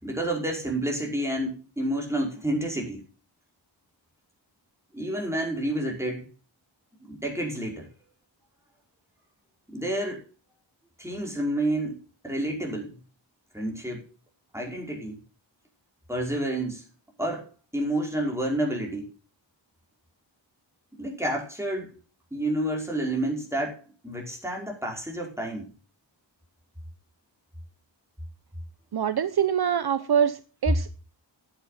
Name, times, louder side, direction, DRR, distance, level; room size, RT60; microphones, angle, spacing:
voice 1, 0.0-3.0 4.9-6.3 7.0-7.9 9.7-10.2 11.0-13.0 13.5-14.1 14.5-15.2 16.1-16.8 17.2-19.1 20.9-21.9 22.3-25.7, right 1 dB, 5° right, 0 dB, 5.3 m, -29 dB
voice 2, 28.9-31.0, right 8 dB, 55° right, 13 dB, 0.8 m, -25 dB
11.0 x 8.2 x 5.8 m, 0.36 s
cardioid pair, 70°, 45 cm